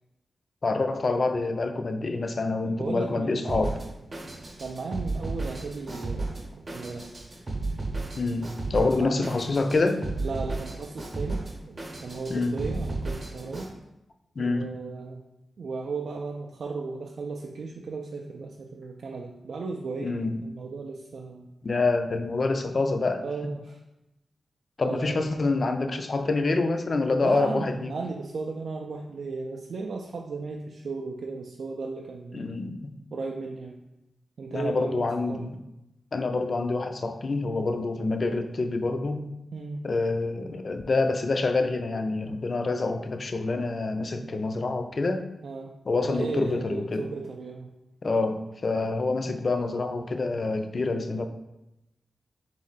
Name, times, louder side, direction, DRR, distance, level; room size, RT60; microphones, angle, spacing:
voice 1, 0.6-3.7 8.2-10.0 12.3-12.6 14.4-14.7 20.0-20.4 21.6-23.2 24.8-28.0 32.3-32.9 34.5-35.6 36.1-39.2 39.8-45.2 45.9-47.0 48.0-51.2, left 3 dB, 40° left, 7 dB, 0.3 m, -27 dB
voice 2, 2.6-3.7 4.6-7.1 8.8-9.2 10.2-13.7 14.4-15.2 15.6-21.5 23.2-23.8 24.8-25.2 27.2-32.7 33.1-33.8 34.4-35.6 39.5-39.8 44.2-44.5 45.4-45.7 46.0-47.7, right 4 dB, 65° right, 1 dB, 0.3 m, -36 dB
Drum kit, 3.5-13.7, right 2 dB, 35° right, 0.8 m, -34 dB
3.6 x 3.1 x 3.9 m, 0.92 s
wide cardioid pair, 135°, 0 cm